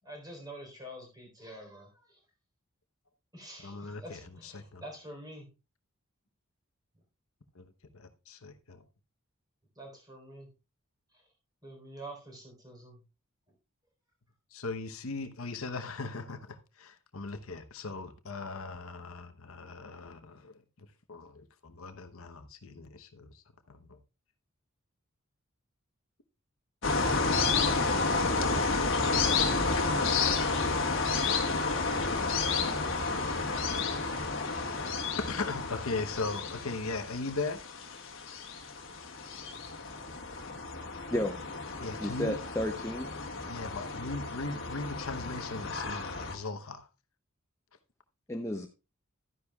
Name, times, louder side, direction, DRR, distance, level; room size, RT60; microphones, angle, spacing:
voice 1, 0.0-2.2 3.3-5.5 9.8-10.5 11.1-11.3 11.6-13.0, right 1 dB, 15° right, 3.9 m, -47 dB
voice 2, 3.6-4.8 7.5-8.8 14.5-24.0 34.8-34.9 35.3-37.6 41.8-42.4 43.5-46.9, left 3 dB, 75° left, 1.0 m, -39 dB
sound 1, 26.8-46.4, left 4 dB, 60° left, 1.6 m, -31 dB
voice 3, 42.0-43.2 48.3-48.7, left 1 dB, 10° left, 0.6 m, -32 dB
12.5 x 9.9 x 2.3 m
head